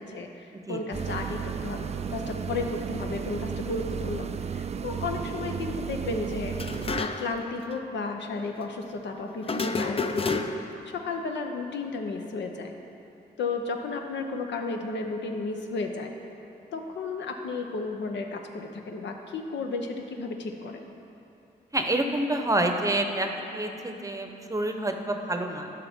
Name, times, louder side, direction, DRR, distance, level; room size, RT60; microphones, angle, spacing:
voice 1, 0.0-1.8 2.1-12.7 13.4-16.1 16.7-20.9, left 3 dB, 75° left, 3 dB, 0.7 m, -33 dB
sound 1, 0.9-7.0, right 7 dB, 35° right, 0.4 m, -33 dB
sound 2, 6.5-7.5 7.7-7.8 9.4-10.8, left 4 dB, 30° left, 0.5 m, -30 dB
voice 2, 21.7-25.7, right 1 dB, 20° right, 4 dB, 0.8 m, -28 dB
11.0 x 5.8 x 3.6 m, 2.9 s
cardioid pair, 65°, 19 cm